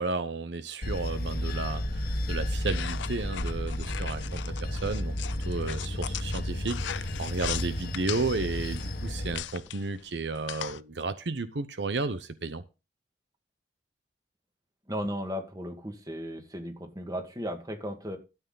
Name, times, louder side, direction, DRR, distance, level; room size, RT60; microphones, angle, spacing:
voice 1, 0.0-5.1 5.4-12.6, right 3 dB, 75° right, 0.8 m, -33 dB
Bell / Train, 0.8-9.3, left 1 dB, 55° left, 1.4 m, -32 dB
sound 1, 2.6-10.8, left 11 dB, 85° left, 0.5 m, -39 dB
voice 2, 14.9-18.2, equal, 20° right, 1.9 m, -35 dB
13.0 x 8.2 x 3.9 m
head